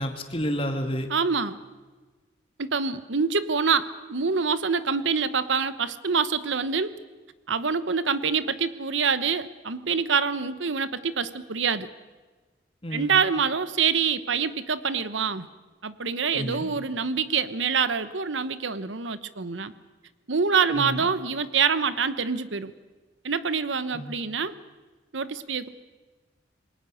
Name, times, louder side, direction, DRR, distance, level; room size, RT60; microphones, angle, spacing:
voice 1, 0.0-1.1 12.8-13.2 16.3-16.7 20.7-21.1 23.9-24.1, equal, 30° left, 6 dB, 2.3 m, -30 dB
voice 2, 1.1-1.6 2.6-7.0 7.5-11.9 12.9-15.5 15.8-19.7 20.3-22.7 23.2-24.5 25.1-25.7, right 5 dB, 80° right, 14 dB, 1.0 m, -26 dB
27.5 x 21.5 x 6.4 m, 1.3 s
head